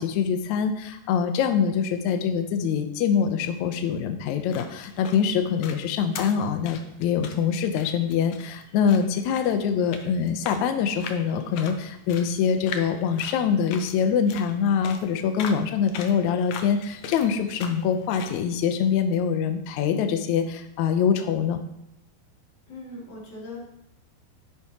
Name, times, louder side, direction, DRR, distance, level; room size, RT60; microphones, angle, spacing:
voice 1, 0.0-21.6, left 7 dB, 90° left, 7 dB, 1.6 m, -24 dB
sound 1, 4.3-18.4, left 6 dB, 70° left, 1.8 m, -41 dB
voice 2, 22.7-23.6, left 2 dB, 50° left, -5 dB, 4.5 m, -39 dB
12.0 x 10.5 x 3.0 m, 0.81 s
omnidirectional pair, 4.4 m